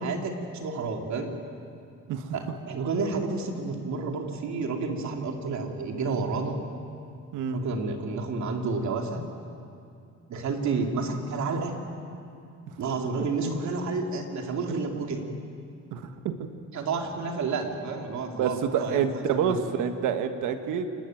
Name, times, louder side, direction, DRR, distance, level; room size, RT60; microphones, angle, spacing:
voice 1, 0.0-1.3 2.3-6.6 7.5-9.2 10.3-11.7 12.8-15.3 16.7-19.5, right 4 dB, 70° right, 2 dB, 3.0 m, -30 dB
voice 2, 15.9-16.5 18.4-20.9, right 7 dB, 90° right, 8 dB, 1.5 m, -28 dB
28.5 x 13.0 x 9.2 m, 2.5 s
cardioid pair, 90°, 30 cm